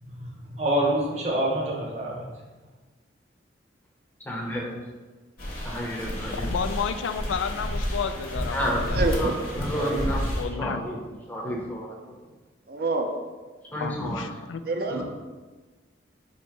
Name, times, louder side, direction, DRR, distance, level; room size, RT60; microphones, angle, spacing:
voice 1, 0.0-2.3, right 1 dB, 35° right, -1 dB, 0.8 m, -27 dB
voice 2, 4.2-4.8 5.6-6.5 8.5-8.9 9.2-9.3 9.6-10.2 10.6-11.0 11.3-12.0 13.7-14.2 14.9-15.0, equal, 10° left, -2 dB, 0.6 m, -30 dB
sound 1, 5.4-10.4, equal, 45° left, 0.9 m, -30 dB
voice 3, 6.3-9.0 10.4-10.9 13.8-14.6, left 6 dB, 75° left, 10 dB, 0.3 m, -31 dB
voice 4, 8.9-10.2 12.7-13.1 14.6-15.0, right 3 dB, 50° right, 4 dB, 0.5 m, -28 dB
4.2 x 2.8 x 4.5 m, 1.3 s
head